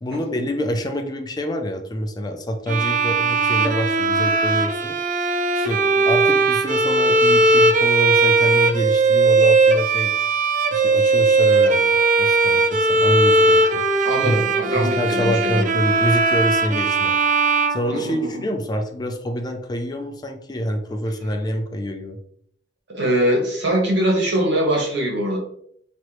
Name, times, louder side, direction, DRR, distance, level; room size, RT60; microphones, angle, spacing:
voice 1, 0.0-5.0 5.5-10.1 10.7-14.5 14.7-17.1 17.7-22.2, equal, 25° left, 5 dB, 0.5 m, -26 dB
Bowed string instrument, 2.7-18.5, right 3 dB, 45° right, 0.4 m, -18 dB
voice 2, 14.0-15.6 17.9-18.4 22.9-25.4, right 1 dB, 75° right, -2 dB, 1.6 m, -22 dB
4.6 x 3.0 x 3.0 m, 0.67 s
head